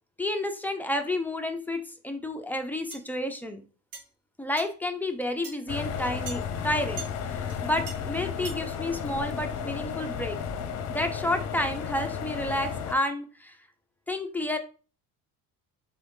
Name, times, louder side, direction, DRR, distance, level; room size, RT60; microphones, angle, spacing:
voice 1, 0.2-3.6 4.4-7.0 7.3-10.4 10.9-13.6 14.1-14.6, left 1 dB, 5° left, 5 dB, 0.4 m, -30 dB
sound 1, 2.9-3.1 3.9-4.1 4.6-4.7 5.4-5.6 6.3-6.4 7.0-7.1 7.5-7.6 7.9-8.0 8.5-8.6, right 4 dB, 75° right, 1.9 m, -40 dB
sound 2, 5.7-12.9, left 7 dB, 50° left, 0.7 m, -33 dB
3.9 x 3.5 x 3.6 m, 0.37 s
cardioid pair, 140°, 34 cm